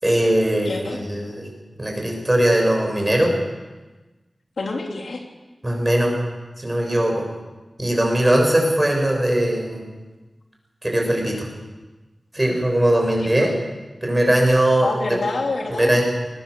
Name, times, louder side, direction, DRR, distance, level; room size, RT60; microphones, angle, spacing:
voice 1, 0.0-1.5 1.8-3.3 5.6-6.1 6.6-7.2 7.8-9.8 10.8-11.5 12.3-13.5 14.0-14.9 15.7-16.0, right 1 dB, 20° right, 1 dB, 7.0 m, -20 dB
voice 2, 0.6-1.0 4.6-5.2 13.2-13.5 14.8-16.0, left 3 dB, 80° left, 1 dB, 3.3 m, -27 dB
22.0 x 19.5 x 6.9 m, 1.2 s
wide cardioid pair, 100°, 0 cm